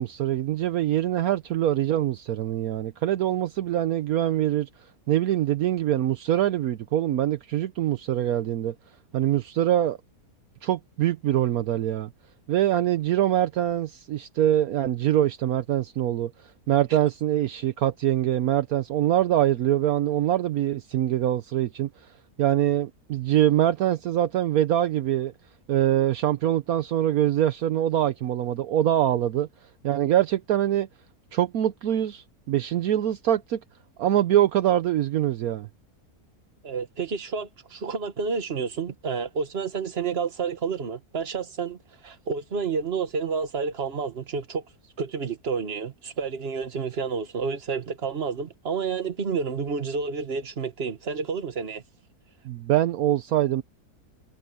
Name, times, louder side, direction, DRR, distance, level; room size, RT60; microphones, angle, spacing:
voice 1, 0.0-4.7 5.1-8.7 9.1-10.0 10.6-12.1 12.5-16.3 16.7-21.9 22.4-25.3 25.7-29.5 29.8-30.9 31.3-33.6 34.0-35.7 52.4-53.6, right 12 dB, 70° right, 1.2 m, -24 dB
voice 2, 36.6-41.8 42.0-44.6 45.0-51.8, right 5 dB, 40° right, 1.6 m, -30 dB
omnidirectional pair, 1.6 m